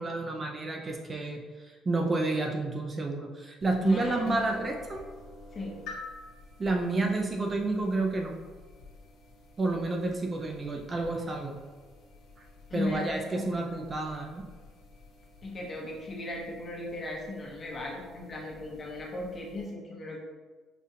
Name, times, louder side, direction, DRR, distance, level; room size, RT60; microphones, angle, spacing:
voice 1, 0.0-5.0 6.6-8.3 9.6-11.5 12.7-14.4, right 2 dB, 25° right, 1 dB, 0.4 m, -30 dB
sound 1, 3.6-19.7, left 3 dB, 80° left, 0.9 m, -51 dB
voice 2, 3.8-4.4 5.5-5.8 12.7-13.5 15.4-20.2, left 2 dB, 35° left, -1 dB, 0.8 m, -36 dB
5.0 x 2.3 x 2.7 m, 1.4 s
cardioid pair, 125°, 0 cm